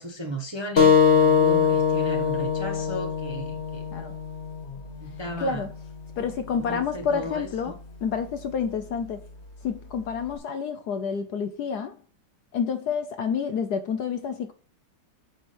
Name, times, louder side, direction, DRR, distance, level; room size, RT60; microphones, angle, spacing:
voice 1, 0.0-3.9 5.0-5.6 6.5-7.8, equal, 20° right, 0.8 m, -35 dB
sound 1, 0.8-5.9, left 6 dB, 35° left, 1.7 m, -23 dB
voice 2, 5.4-5.7 6.2-9.2 9.6-12.0 12.5-14.5, left 6 dB, 65° left, 1.1 m, -29 dB
8.1 x 4.9 x 4.3 m
omnidirectional pair, 2.2 m